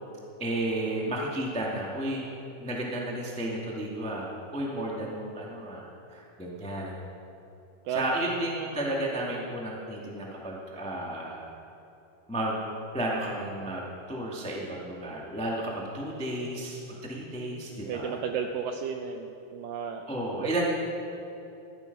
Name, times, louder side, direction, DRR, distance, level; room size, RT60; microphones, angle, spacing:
voice 1, 0.4-2.3 2.6-6.9 7.9-11.5 12.3-12.6 12.9-18.2 20.1-20.6, right 1 dB, 5° left, -3 dB, 0.6 m, -33 dB
voice 2, 7.9-8.2 17.9-20.0 20.4-20.6, right 7 dB, 85° right, 5 dB, 2.0 m, -33 dB
15.5 x 13.0 x 5.5 m, 2.9 s
omnidirectional pair, 4.5 m